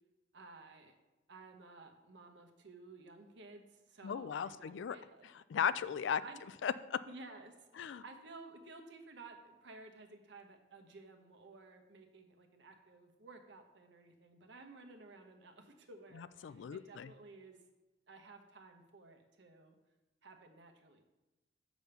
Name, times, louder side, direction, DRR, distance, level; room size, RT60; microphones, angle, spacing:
voice 1, 0.3-0.9 1.3-5.3 6.2-6.4 7.1-17.6 18.1-19.8 20.2-21.0, right 3 dB, 70° right, 5 dB, 1.0 m, -55 dB
voice 2, 4.0-5.0 5.3-6.2 6.6-7.0 7.8-8.0 16.1-17.1, left 7 dB, 70° left, 15 dB, 0.3 m, -36 dB
6.2 x 5.2 x 6.9 m, 1.1 s
head